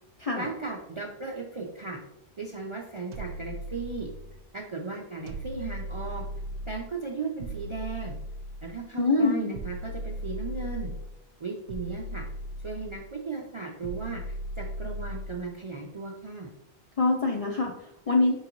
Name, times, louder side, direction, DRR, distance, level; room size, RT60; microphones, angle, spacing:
voice 1, 0.3-2.0 2.4-4.1 4.5-6.2 6.7-8.2 8.6-10.9 11.4-12.3 12.6-16.5, right 4 dB, 45° right, -1 dB, 0.4 m, -36 dB
sound 1, 3.1-4.4 5.3-6.9 7.4-8.8 9.5-11.2 11.7-13.1 13.8-15.4, equal, 85° right, 0.9 m, -37 dB
voice 2, 8.9-9.6 17.0-18.4, left 3 dB, 55° left, 0 dB, 0.4 m, -25 dB
4.6 x 3.7 x 3.0 m, 0.82 s
omnidirectional pair, 1.1 m